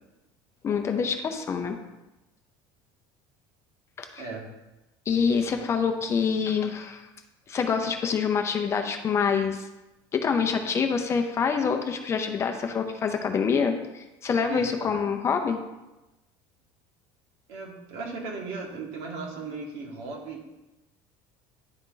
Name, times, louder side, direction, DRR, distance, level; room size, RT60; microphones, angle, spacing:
voice 1, 0.6-1.8 4.0-4.1 5.1-7.0 7.5-9.7 10.1-15.6, left 6 dB, 25° left, 5 dB, 0.6 m, -26 dB
voice 2, 4.2-4.5 14.5-15.0 17.5-20.4, right 3 dB, 70° right, 0 dB, 1.8 m, -37 dB
10.5 x 3.9 x 3.8 m, 1.0 s
cardioid pair, 160°, 11 cm